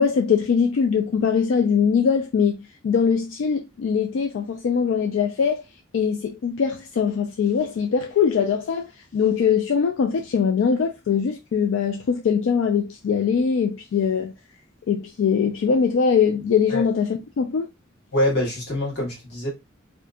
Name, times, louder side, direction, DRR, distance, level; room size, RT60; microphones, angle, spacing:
voice 1, 0.0-2.6 2.8-5.6 5.9-14.3 14.9-17.7, left 6 dB, 85° left, 0.3 m, -22 dB
voice 2, 18.1-19.5, left 1 dB, 55° left, 1.4 m, -24 dB
2.7 x 2.4 x 2.2 m
head